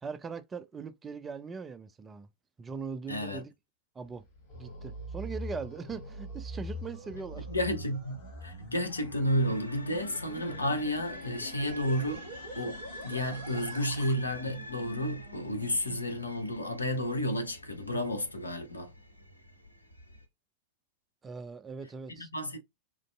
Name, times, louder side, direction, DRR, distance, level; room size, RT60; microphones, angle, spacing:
voice 1, 0.0-2.3 2.6-3.5 4.0-4.2 4.6-7.5 21.2-22.3, right 5 dB, 20° right, 0.3 m, -40 dB
voice 2, 3.1-3.4 7.5-8.2 8.4-12.2 12.6-18.9 22.2-22.6, left 1 dB, 80° left, 0.6 m, -31 dB
sound 1, 4.0-14.1, equal, 45° left, 2.3 m, -44 dB
sound 2, 9.2-20.3, equal, 90° right, 0.5 m, -47 dB
3.7 x 2.5 x 2.2 m
figure-of-eight pair, 90°, 0 cm